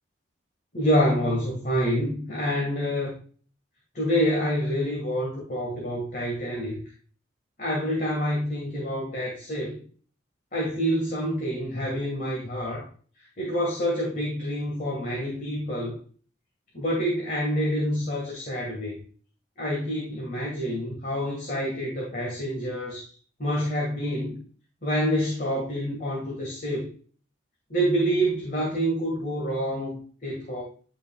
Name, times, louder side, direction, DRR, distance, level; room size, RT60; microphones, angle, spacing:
voice 1, 0.7-3.1 3.9-6.8 7.6-9.8 10.5-12.9 13.4-16.0 16.7-19.0 19.6-23.1 23.4-24.4 24.8-26.9 27.7-30.6, equal, 45° left, -3 dB, 2.1 m, -27 dB
10.0 x 5.7 x 2.5 m, 0.43 s
head